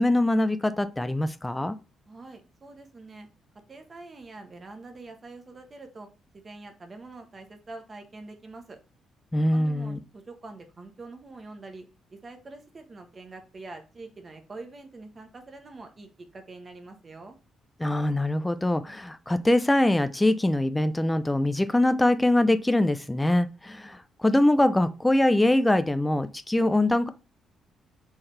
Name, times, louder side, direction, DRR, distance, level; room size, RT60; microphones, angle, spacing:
voice 1, 0.0-1.8 9.3-10.0 17.8-27.1, left 1 dB, 10° left, 0.4 m, -23 dB
voice 2, 2.1-3.3 3.7-6.1 6.4-8.8 9.5-11.8 12.1-17.4, right 3 dB, 35° right, 1.1 m, -45 dB
4.3 x 3.8 x 3.2 m
cardioid pair, 90°, 0 cm